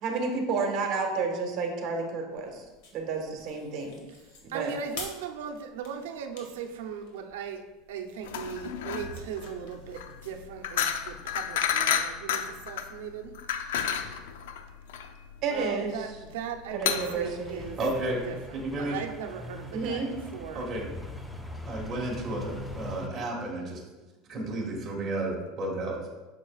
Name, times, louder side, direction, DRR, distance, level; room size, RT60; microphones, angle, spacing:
voice 1, 0.0-2.6 2.9-4.0 4.4-4.7 15.4-16.1 16.7-17.7 19.7-20.1, right 4 dB, 45° right, 2 dB, 1.4 m, -31 dB
sound 1, 2.3-11.1, left 3 dB, 65° left, 1.8 m, -49 dB
voice 2, 4.5-7.6 7.9-13.3 15.5-17.8 18.2-20.7, right 7 dB, 85° right, 5 dB, 0.7 m, -38 dB
sound 2, 8.2-18.2, left 8 dB, 90° left, 0.5 m, -31 dB
sound 3, 16.9-23.1, left 1 dB, 5° left, 0.5 m, -42 dB
voice 3, 17.8-18.2 18.5-19.0 20.5-20.9 21.6-23.8 24.3-26.0, right 2 dB, 20° right, -3 dB, 1.8 m, -32 dB
8.4 x 6.5 x 2.4 m, 1.1 s
supercardioid pair, 155°, 0 cm